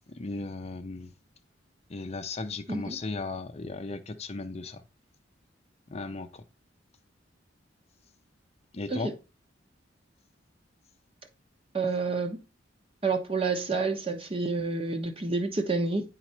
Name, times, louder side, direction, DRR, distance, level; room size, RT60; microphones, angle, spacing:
voice 1, 0.1-1.1 1.9-4.8 5.9-6.4 8.7-9.1, left 3 dB, 35° left, 0.6 m, -36 dB
voice 2, 11.7-12.4 13.0-16.0, right 3 dB, 30° right, 1.1 m, -29 dB
9.4 x 4.1 x 4.4 m
head